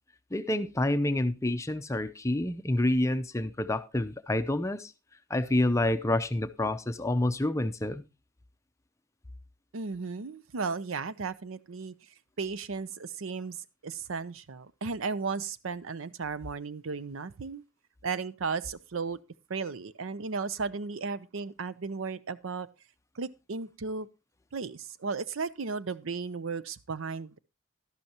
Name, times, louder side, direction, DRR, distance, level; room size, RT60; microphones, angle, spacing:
voice 1, 0.3-4.9 5.3-8.0, left 1 dB, 15° left, 0.6 m, -28 dB
voice 2, 9.7-11.9 12.4-17.6 18.0-19.2 19.5-22.7 23.2-24.1 24.5-27.4, right 4 dB, 70° right, 0.6 m, -35 dB
12.0 x 12.0 x 2.9 m
head